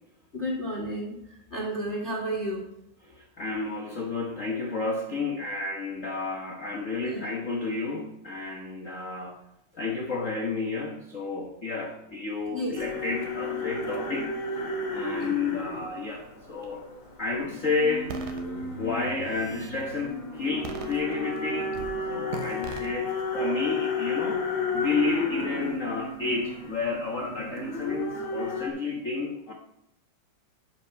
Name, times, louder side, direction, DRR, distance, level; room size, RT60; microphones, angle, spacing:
voice 1, 0.3-2.7 7.0-7.2 12.5-12.7, equal, 25° left, -3 dB, 1.9 m, -32 dB
voice 2, 3.0-9.4 9.7-14.3 14.9-16.9 17.2-18.4 18.8-21.8 22.1-29.5, left 4 dB, 90° left, 0 dB, 0.6 m, -31 dB
sound 1, 12.7-28.7, left 2 dB, 45° left, 2.3 m, -33 dB
sound 2, 18.1-18.4 19.1-19.8 20.6-21.4 21.7-22.0 22.3-22.9, right 6 dB, 80° right, 2.5 m, -38 dB
12.0 x 5.4 x 4.6 m, 0.85 s
omnidirectional pair, 3.4 m